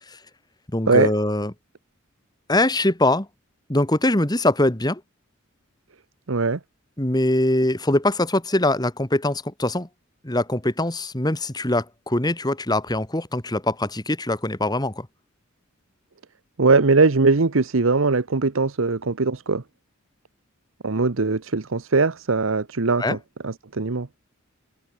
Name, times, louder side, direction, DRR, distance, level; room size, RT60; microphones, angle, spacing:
voice 1, 0.7-1.5 2.5-3.3 3.7-5.0 7.0-9.9 10.2-15.1 23.0-23.2, left 1 dB, 20° left, 2.0 m, -22 dB
voice 2, 6.3-6.6 16.6-19.6 20.8-23.2 23.4-24.1, right 3 dB, 70° right, 0.9 m, -20 dB
head